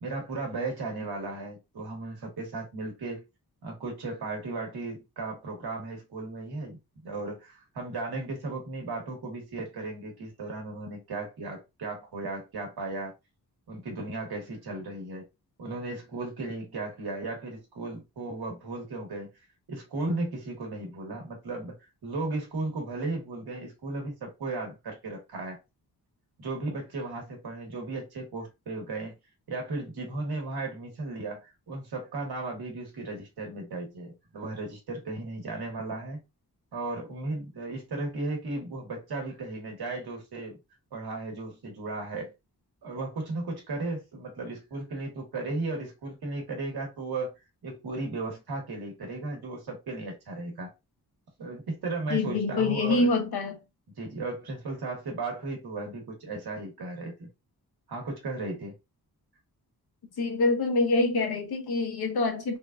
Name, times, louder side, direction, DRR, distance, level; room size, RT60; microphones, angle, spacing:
voice 1, 0.0-3.2 3.6-13.1 13.7-15.3 15.6-19.3 19.7-21.8 22.0-25.6 26.4-29.2 29.5-36.2 36.7-40.6 40.9-42.3 42.8-47.3 47.6-50.7 51.4-53.1 54.0-57.3 57.9-58.7, right 2 dB, 85° right, 1.4 m, -35 dB
voice 2, 52.1-53.6 60.2-62.6, left 3 dB, 80° left, 0.9 m, -26 dB
3.6 x 2.5 x 2.3 m
wide cardioid pair, 90°, 37 cm